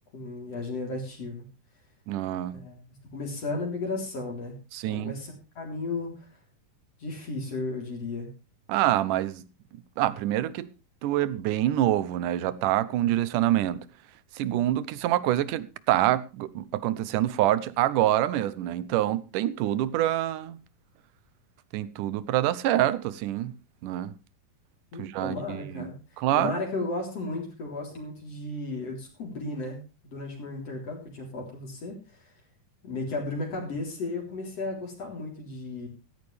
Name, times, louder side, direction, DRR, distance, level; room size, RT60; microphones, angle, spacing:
voice 1, 0.1-1.4 2.5-2.8 3.1-4.5 4.9-6.3 7.0-8.3 24.9-25.9 26.3-32.3 32.8-35.9, left 2 dB, 50° left, 4.6 m, -34 dB
voice 2, 2.1-2.6 4.7-5.1 8.7-9.4 10.0-10.7 11.0-13.8 14.4-20.6 21.7-23.5 23.8-24.1 25.0-25.9 26.2-26.5, right 13 dB, 80° right, 2.3 m, -26 dB
16.0 x 13.5 x 3.3 m
omnidirectional pair, 3.7 m